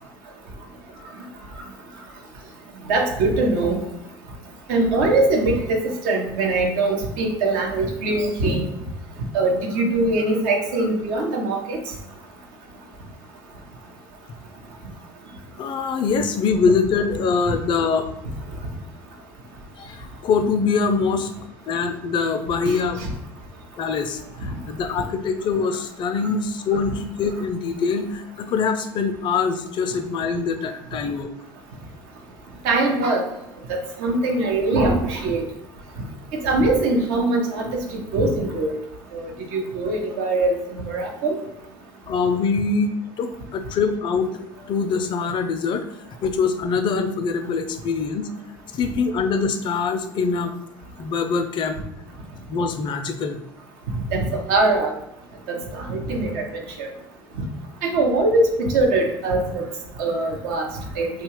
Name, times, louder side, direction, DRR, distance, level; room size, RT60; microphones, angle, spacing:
voice 1, 2.9-3.8 4.7-5.8 6.0-8.6 9.3-11.8 22.7-23.1 32.6-33.2 33.7-35.4 36.4-37.7 38.1-38.8 39.1-39.2 39.5-40.5 40.9-41.4 54.1-54.9 55.9-56.4 56.8-56.9 57.8-59.6 60.0-60.7 61.0-61.1, right 2 dB, 70° right, 2 dB, 0.6 m, -21 dB
voice 2, 15.6-18.0 19.8-21.3 21.7-23.0 23.8-31.3 42.1-45.8 46.2-48.3 48.7-50.5 51.0-51.8 52.5-53.4, left 5 dB, 45° left, 7 dB, 0.4 m, -23 dB
2.8 x 2.2 x 3.0 m, 0.82 s
hypercardioid pair, 65°, 11 cm